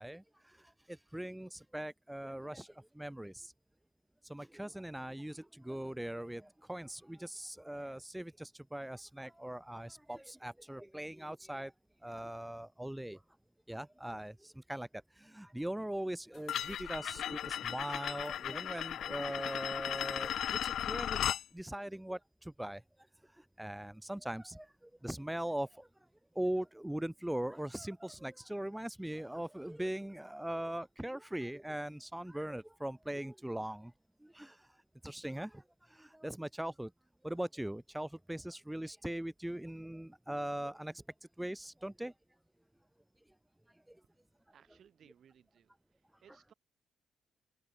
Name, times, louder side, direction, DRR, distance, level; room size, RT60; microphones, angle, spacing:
voice 1, 0.0-3.5 4.2-11.7 12.0-13.2 13.7-21.2 21.5-22.8 23.2-25.9 26.3-33.9 34.2-36.9 37.2-41.0 41.4-42.1 43.9-44.0, right 1 dB, 5° right, 0.5 m, -41 dB
sound 1, 16.5-21.4, left 10 dB, 70° left, 0.4 m, -36 dB
voice 2, 44.0-46.5, right 9 dB, 60° right, 5.2 m, -65 dB
open air
cardioid pair, 90°, 0 cm